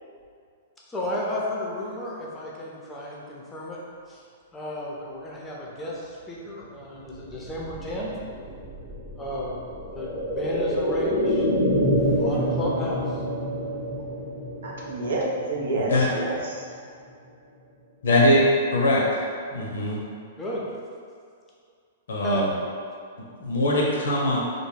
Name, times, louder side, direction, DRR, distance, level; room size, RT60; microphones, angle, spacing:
voice 1, 0.9-3.8 4.1-4.2 4.5-8.1 9.2-11.5 12.2-13.2 20.4-20.7 22.2-22.6, left 1 dB, 15° left, -4 dB, 0.5 m, -33 dB
sound 1, 7.0-16.8 17.1-17.2, equal, 20° right, 0.8 m, -28 dB
voice 2, 14.6-16.7, right 2 dB, 70° right, -2 dB, 0.5 m, -29 dB
voice 3, 18.0-18.4 18.7-19.0 19.5-20.0 22.1-22.5 23.2-24.4, left 1 dB, 80° left, -3 dB, 0.6 m, -22 dB
2.2 x 2.1 x 3.2 m, 2.2 s
hypercardioid pair, 120°, 0 cm